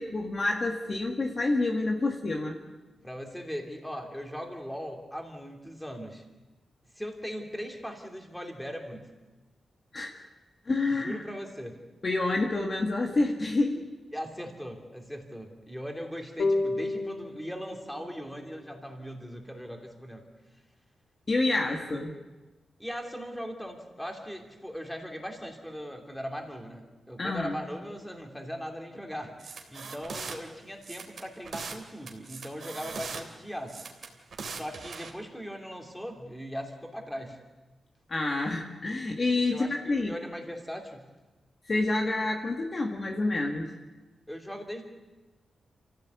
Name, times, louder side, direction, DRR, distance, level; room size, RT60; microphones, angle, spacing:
voice 1, 0.0-2.6 9.9-10.2 10.7-11.2 12.0-13.9 21.3-22.1 27.2-27.6 38.1-40.2 41.7-43.7, left 2 dB, 30° left, 1 dB, 1.7 m, -28 dB
voice 2, 3.0-6.2 6.9-9.1 10.8-11.8 14.1-20.2 22.8-33.9 34.5-37.4 39.5-41.1 44.3-44.9, equal, 5° left, 2 dB, 3.0 m, -39 dB
sound 1, 16.4-19.7, left 2 dB, 65° left, 2.1 m, -33 dB
sound 2, 29.4-30.4 30.8-31.8 32.1-33.2 33.7-35.1, right 5 dB, 50° right, 3.0 m, -40 dB
28.5 x 16.0 x 8.4 m, 1.2 s
wide cardioid pair, 165°, 0 cm